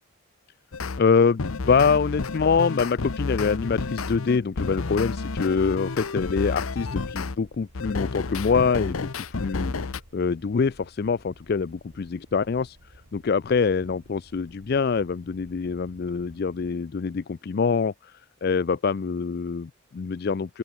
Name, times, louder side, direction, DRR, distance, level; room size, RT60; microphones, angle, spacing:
sound 1, 0.7-1.0 1.4-7.4 7.7-10.0, left 3 dB, 80° left, 0.9 m, -30 dB
voice 1, 1.0-12.8 13.1-20.6, left 5 dB, 45° left, 0.4 m, -25 dB
sound 2, 1.7-16.7, right 1 dB, 70° right, 4.2 m, -53 dB
open air
head